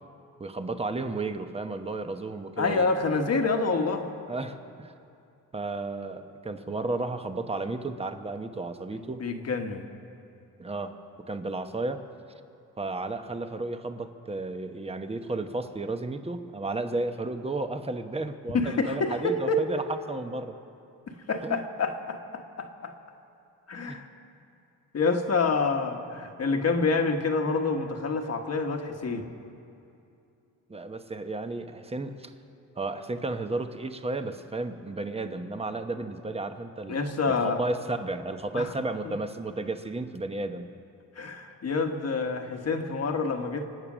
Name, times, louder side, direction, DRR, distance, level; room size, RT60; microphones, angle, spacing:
voice 1, 0.4-2.9 4.3-4.9 5.5-9.2 10.6-10.9 11.3-12.0 12.8-20.5 21.4-21.7 23.9-24.0 30.7-32.3 32.8-37.0 37.3-40.7, right 2 dB, 15° right, 8 dB, 1.0 m, -33 dB
voice 2, 2.6-4.1 8.9-9.8 18.5-19.7 21.1-22.9 23.7-24.1 24.9-29.3 36.9-37.6 38.5-38.7 41.2-43.6, left 4 dB, 45° left, 4 dB, 1.4 m, -27 dB
26.0 x 8.8 x 6.2 m, 2.6 s
cardioid pair, 95°, 34 cm